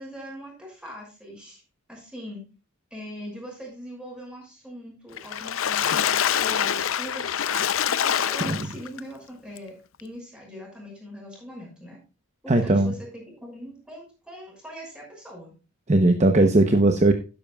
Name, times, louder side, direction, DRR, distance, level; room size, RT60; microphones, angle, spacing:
voice 1, 0.0-1.6 1.9-2.4 2.9-7.7 8.0-12.0 12.4-15.5, equal, 5° right, -2 dB, 6.1 m, -41 dB
Water / Splash splatter, 5.2-9.0 9.6-9.7 10.0-10.1, left 9 dB, 70° left, 0.6 m, -25 dB
voice 2, 12.5-12.9 15.9-17.1, right 2 dB, 35° right, 6 dB, 0.9 m, -18 dB
12.5 x 10.5 x 2.3 m, 0.32 s
head